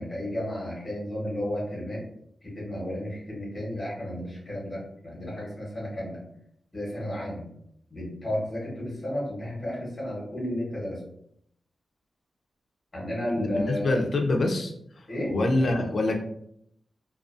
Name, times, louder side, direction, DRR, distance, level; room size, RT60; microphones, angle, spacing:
voice 1, 0.0-2.0 2.4-6.2 6.7-7.5 7.9-11.0 12.9-14.0 15.1-15.3, left 1 dB, 20° left, -6 dB, 1.0 m, -32 dB
voice 2, 13.4-14.7 15.3-16.2, left 2 dB, 45° left, 3 dB, 0.4 m, -25 dB
2.4 x 2.3 x 2.4 m, 0.70 s
wide cardioid pair, 170°, 0 cm